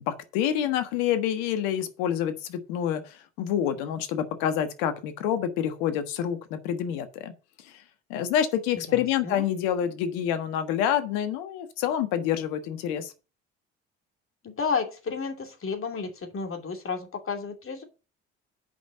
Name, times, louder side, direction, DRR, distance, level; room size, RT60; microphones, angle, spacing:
voice 1, 0.0-7.3 7.6-7.7 8.1-13.1, left 9 dB, 75° left, 1.4 m, -27 dB
voice 2, 14.4-17.8, left 5 dB, 40° left, 2.7 m, -32 dB
8.4 x 5.5 x 6.7 m
hypercardioid pair, 60°, 33 cm